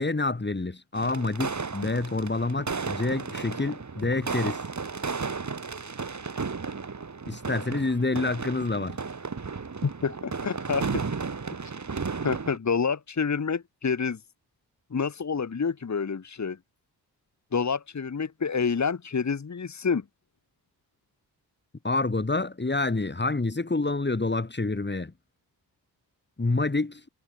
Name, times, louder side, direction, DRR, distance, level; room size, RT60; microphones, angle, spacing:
voice 1, 0.0-4.6 7.3-9.0 21.8-25.1 26.4-27.0, left 3 dB, 25° left, 4.9 m, -27 dB
sound 1, 1.0-12.6, right 4 dB, 45° right, 4.2 m, -34 dB
voice 2, 9.8-11.0 12.2-14.2 14.9-16.6 17.5-20.0, left 5 dB, 45° left, 2.1 m, -28 dB
cardioid pair, 65°, 40 cm